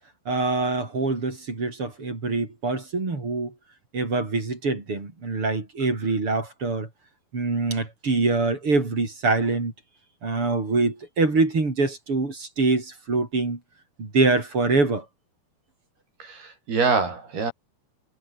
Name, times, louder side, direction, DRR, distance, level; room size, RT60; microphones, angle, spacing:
voice 1, 0.3-3.5 3.9-6.9 7.3-9.7 10.2-13.6 14.0-15.1, right 3 dB, 35° right, 5.5 m, -24 dB
voice 2, 16.2-17.5, right 4 dB, 70° right, 8.9 m, -25 dB
omnidirectional pair, 4.6 m